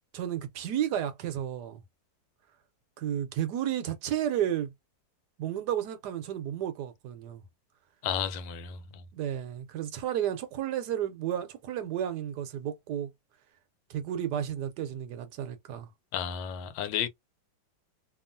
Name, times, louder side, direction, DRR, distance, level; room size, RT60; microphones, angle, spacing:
voice 1, 0.1-1.8 3.0-4.7 5.4-7.4 9.1-13.1 13.9-15.9, right 10 dB, 75° right, 1.1 m, -32 dB
voice 2, 8.0-9.0 16.1-17.1, left 8 dB, 90° left, 1.3 m, -32 dB
2.9 x 2.3 x 2.5 m
omnidirectional pair, 2.0 m